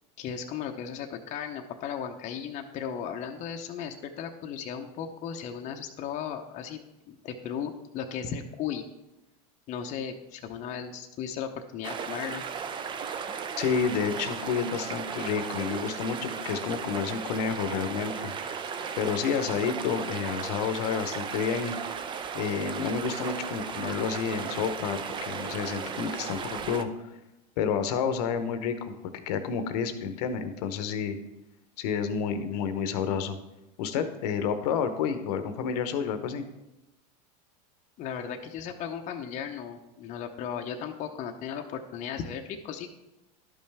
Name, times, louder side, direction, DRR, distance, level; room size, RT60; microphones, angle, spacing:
voice 1, 0.2-6.8 7.1-8.8 9.7-12.4 38.0-42.9, left 8 dB, 35° left, 4 dB, 0.7 m, -36 dB
sound 1, 11.8-26.8, right 6 dB, 25° right, 0.5 m, -36 dB
voice 2, 13.6-18.3 19.0-21.8 22.3-26.9 27.6-29.0 29.3-31.2 31.8-33.4 33.8-36.4, left 6 dB, 70° left, 9 dB, 0.9 m, -30 dB
11.5 x 5.5 x 3.4 m, 0.95 s
supercardioid pair, 130°, 21 cm